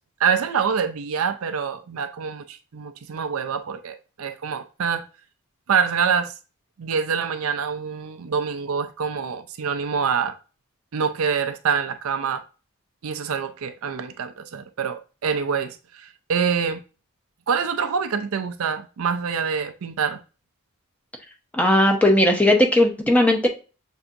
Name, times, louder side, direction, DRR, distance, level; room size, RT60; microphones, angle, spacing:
voice 1, 0.2-5.0 5.7-6.3 6.8-10.4 10.9-12.4 13.0-16.8 17.5-20.2, right 6 dB, 70° right, 0.5 m, -25 dB
voice 2, 21.5-23.5, left 1 dB, 5° left, 0.6 m, -17 dB
6.8 x 2.7 x 2.5 m
head